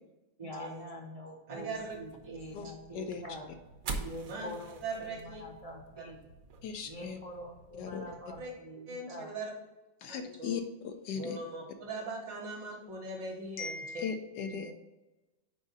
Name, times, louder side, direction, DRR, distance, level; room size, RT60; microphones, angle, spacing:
voice 1, 0.4-3.5 4.0-6.2 6.8-9.3 14.4-14.7, equal, 35° right, 0 dB, 0.5 m, -45 dB
voice 2, 1.5-2.0 2.2-2.7 4.3-4.5 4.8-5.4 6.0-6.1 7.0-7.1 8.4-8.5 8.9-9.5 10.1-10.5 11.1-14.0, right 3 dB, 75° right, 0 dB, 2.1 m, -40 dB
sound 1, 1.7-8.5, right 4 dB, 60° right, 1.1 m, -46 dB
voice 3, 6.6-7.2 7.8-8.0 10.0-11.4 13.6-14.7, left 6 dB, 75° left, 6 dB, 1.2 m, -38 dB
5.4 x 4.9 x 5.2 m, 1.1 s
omnidirectional pair, 2.0 m